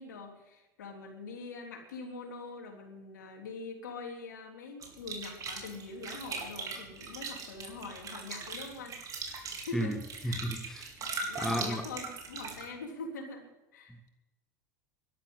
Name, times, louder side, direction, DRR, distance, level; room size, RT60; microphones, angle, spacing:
voice 1, 0.0-9.0 9.6-10.4 11.2-14.0, left 3 dB, 85° left, 3.5 m, -43 dB
sound 1, 4.8-12.6, right 4 dB, 40° right, 4.0 m, -40 dB
voice 2, 10.2-10.8 11.4-11.8, equal, 5° left, 1.5 m, -32 dB
12.5 x 11.5 x 8.2 m
hypercardioid pair, 90°, 9 cm